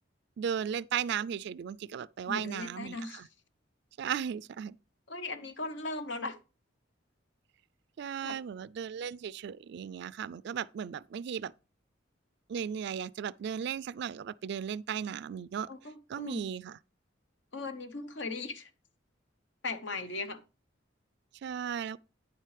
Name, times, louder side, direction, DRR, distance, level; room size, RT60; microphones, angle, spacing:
voice 1, 0.4-3.3 4.0-4.8 8.0-11.5 12.5-15.7 16.1-16.8 21.4-22.0, right 8 dB, 60° right, 0.3 m, -36 dB
voice 2, 2.3-3.3 5.1-6.4 8.2-8.4 15.7-16.4 17.5-18.7 19.6-20.4, left 3 dB, 65° left, 0.9 m, -38 dB
9.6 x 7.5 x 3.3 m
head